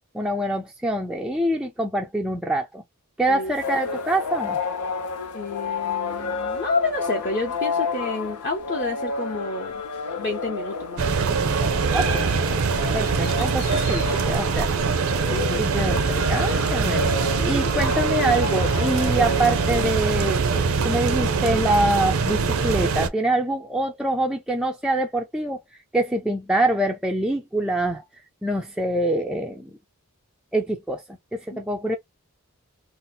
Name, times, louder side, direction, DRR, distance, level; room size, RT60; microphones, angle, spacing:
voice 1, 0.1-2.8 3.2-4.6 11.9-12.3 12.9-14.7 15.6-17.1 17.5-25.6 25.9-28.0 28.4-29.7 30.5-32.0, right 1 dB, 5° right, 0.3 m, -25 dB
voice 2, 3.3-4.0 5.3-9.8 10.2-11.4 15.3-15.6 31.5-31.6, left 3 dB, 35° left, 0.7 m, -29 dB
sound 1, 3.5-20.5, left 3 dB, 90° left, 0.7 m, -31 dB
sound 2, 11.0-23.1, right 5 dB, 65° right, 0.5 m, -23 dB
2.7 x 2.0 x 3.9 m
head